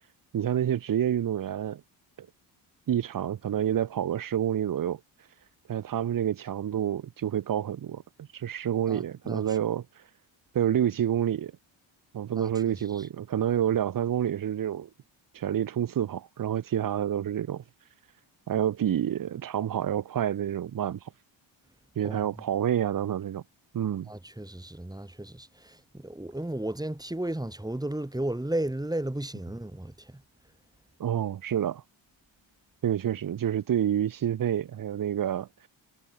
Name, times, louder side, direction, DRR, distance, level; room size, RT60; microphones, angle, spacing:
voice 1, 0.3-1.8 2.2-2.3 2.9-5.0 5.7-9.8 10.5-11.5 12.1-14.9 15.3-17.6 18.5-21.0 22.0-23.4 23.7-24.1 31.0-31.8 32.8-35.5, right 10 dB, 45° right, 1.0 m, -28 dB
voice 2, 8.9-9.6 12.4-13.1 22.0-22.2 24.1-30.2, right 1 dB, 10° right, 5.4 m, -34 dB
cardioid pair, 85°, 47 cm